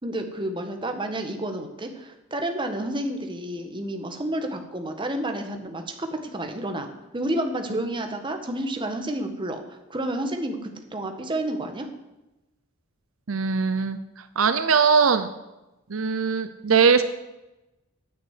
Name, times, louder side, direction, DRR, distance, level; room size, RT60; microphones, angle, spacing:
voice 1, 0.0-11.9, right 1 dB, 25° right, 5 dB, 1.4 m, -30 dB
voice 2, 13.3-14.0 14.4-15.3 15.9-17.0, right 5 dB, 75° right, 11 dB, 0.7 m, -20 dB
9.6 x 9.2 x 8.2 m, 0.99 s
head